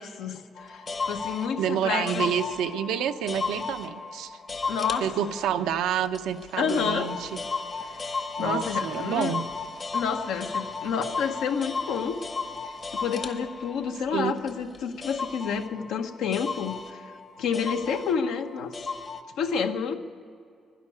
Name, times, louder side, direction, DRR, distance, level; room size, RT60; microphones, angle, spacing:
voice 1, 0.0-2.3 4.7-5.1 6.6-7.1 7.9-9.4 9.9-12.2 12.6-17.1 17.4-18.7 19.4-20.0, left 6 dB, 85° left, 5 dB, 1.0 m, -29 dB
sound 1, 0.5-19.2, left 4 dB, 40° left, 1.0 m, -35 dB
voice 2, 1.6-4.4 5.0-7.4 8.4-9.4 14.1-14.4, right 9 dB, 90° right, 8 dB, 0.7 m, -28 dB
11.5 x 11.0 x 9.2 m, 2.3 s
cardioid pair, 90°, 0 cm